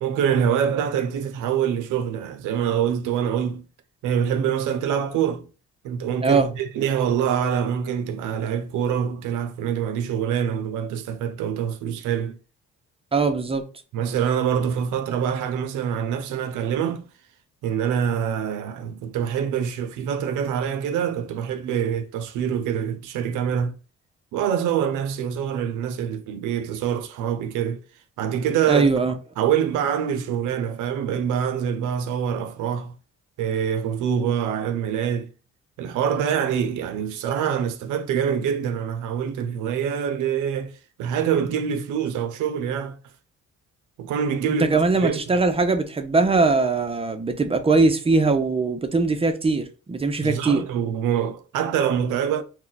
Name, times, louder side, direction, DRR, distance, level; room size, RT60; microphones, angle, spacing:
voice 1, 0.0-3.7 4.0-5.5 5.8-12.4 13.9-17.0 17.6-23.7 24.3-27.8 28.2-28.9 29.4-33.0 33.4-35.3 35.8-43.0 44.0-45.2 50.2-52.4, right 8 dB, 90° right, 0.5 m, -25 dB
voice 2, 13.1-13.6 28.7-29.1 44.7-50.6, right 3 dB, 20° right, 0.5 m, -21 dB
2.2 x 2.1 x 3.8 m
cardioid pair, 90°, 30 cm